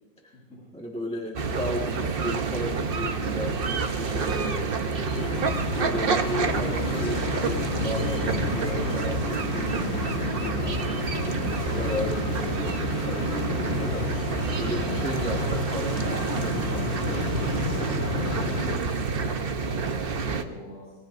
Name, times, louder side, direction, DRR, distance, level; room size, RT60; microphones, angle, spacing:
voice 1, 0.7-11.0 11.7-14.1 14.6-17.3, equal, 5° left, -2 dB, 1.2 m, -35 dB
sound 1, 1.4-20.4, right 4 dB, 55° right, 0.6 m, -28 dB
sound 2, 5.1-18.8, left 4 dB, 80° left, 2.1 m, -32 dB
voice 2, 11.3-11.7 18.1-20.9, left 1 dB, 40° left, -10 dB, 8.3 m, -44 dB
29.5 x 19.0 x 2.6 m, 1.3 s
omnidirectional pair, 2.1 m